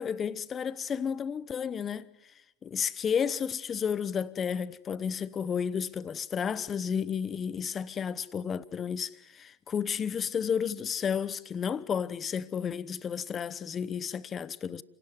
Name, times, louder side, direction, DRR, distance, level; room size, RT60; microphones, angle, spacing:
voice 1, 0.0-2.1 2.6-14.8, left 7 dB, 20° left, 0.8 m, -32 dB
28.0 x 17.0 x 9.6 m
figure-of-eight pair, 90°, 0 cm